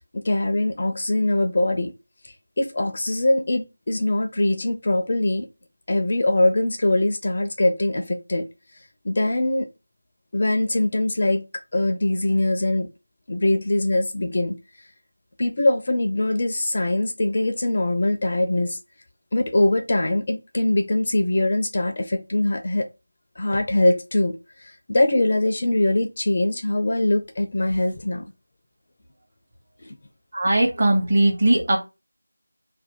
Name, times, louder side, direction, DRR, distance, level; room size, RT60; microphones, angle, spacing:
voice 1, 0.1-1.9 2.6-5.5 5.9-8.5 9.0-9.7 10.3-11.4 11.7-12.9 13.3-14.6 15.4-18.8 19.3-22.9 23.4-24.3 24.9-28.3 29.9-30.0, left 1 dB, 35° left, 0.5 m, -22 dB
voice 2, 30.3-31.8, right 1 dB, 35° right, 1.0 m, -19 dB
2.6 x 2.3 x 3.5 m
figure-of-eight pair, 170°, 0 cm